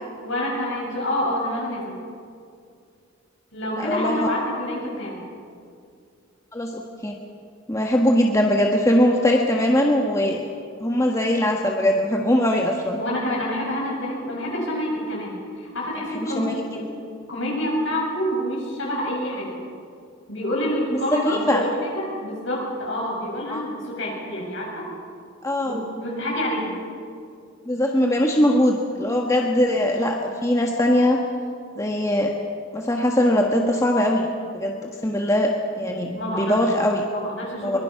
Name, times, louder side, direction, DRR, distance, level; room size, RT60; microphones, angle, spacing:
voice 1, 0.2-2.0 3.5-5.3 13.0-17.0 17.3-19.6 20.3-24.9 25.6-26.8 36.2-36.6 37.1-37.8, equal, 65° left, -2 dB, 7.5 m, -27 dB
voice 2, 3.7-4.2 6.5-7.2 7.7-10.4 10.8-13.0 16.3-16.6 21.2-21.6 23.5-23.6 25.4-25.8 27.6-31.2 31.8-32.3 32.7-34.3 34.5-37.0 37.6-37.8, left 1 dB, 15° left, 1 dB, 1.4 m, -21 dB
23.0 x 22.5 x 5.9 m, 2.3 s
head